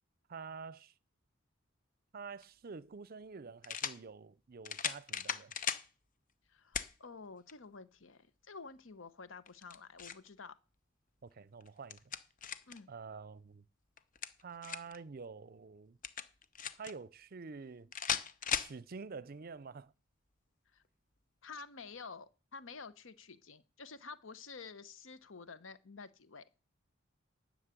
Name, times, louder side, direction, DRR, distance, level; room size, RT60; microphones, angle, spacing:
voice 1, 0.3-0.9 2.1-5.5 11.2-12.0 12.9-13.6 14.4-16.0 16.8-17.9 18.5-19.9, right 5 dB, 50° right, 0.5 m, -48 dB
sound 1, 2.4-2.5 3.6-4.0 4.6-5.9 6.7-6.9 7.5-7.6 9.5-10.3 11.6-12.8 14.0-15.0 16.0-16.9 17.9-18.7, left 7 dB, 40° left, 0.8 m, -37 dB
voice 2, 6.5-10.6 12.7-12.9 20.7-20.8 21.4-26.4, left 4 dB, 75° left, 1.0 m, -50 dB
11.5 x 6.5 x 8.2 m
head